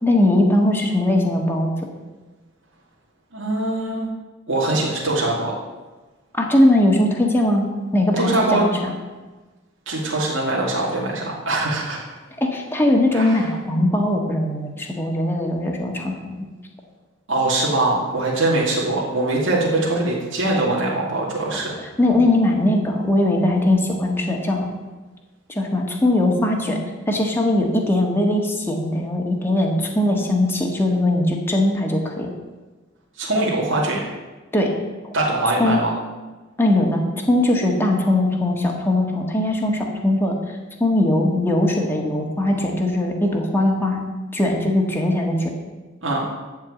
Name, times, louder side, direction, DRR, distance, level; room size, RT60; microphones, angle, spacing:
voice 1, 0.0-1.7 6.3-8.7 12.4-16.4 21.8-24.7 25.5-26.8 27.1-32.3 34.5-34.7 35.0-35.1 35.6-35.8 36.6-37.0 37.3-40.4 40.8-44.1 44.3-45.5, left 1 dB, 10° left, 0 dB, 1.7 m, -20 dB
voice 2, 3.3-4.1 4.5-5.5 8.2-8.6 9.9-12.0 13.1-13.5 17.3-21.7 33.2-34.0 35.1-35.9 46.0-46.2, right 2 dB, 65° right, -4 dB, 2.5 m, -22 dB
14.0 x 4.7 x 8.4 m, 1.2 s
head